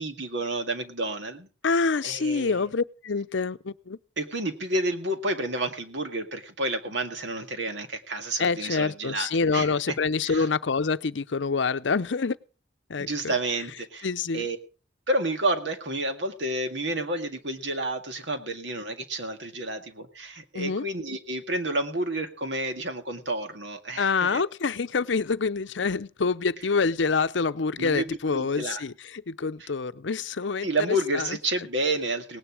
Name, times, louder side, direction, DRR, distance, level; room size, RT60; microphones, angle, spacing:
voice 1, 0.0-1.5 2.0-2.6 4.2-9.3 9.5-9.7 10.2-10.5 13.0-14.1 14.3-14.6 15.1-24.4 27.8-28.8 30.6-32.4, right 1 dB, 70° right, 2.0 m, -30 dB
voice 2, 1.6-4.0 8.4-12.4 12.9-13.3 14.0-14.5 20.5-20.8 24.0-31.4, left 4 dB, 75° left, 0.6 m, -26 dB
18.5 x 10.0 x 4.9 m
head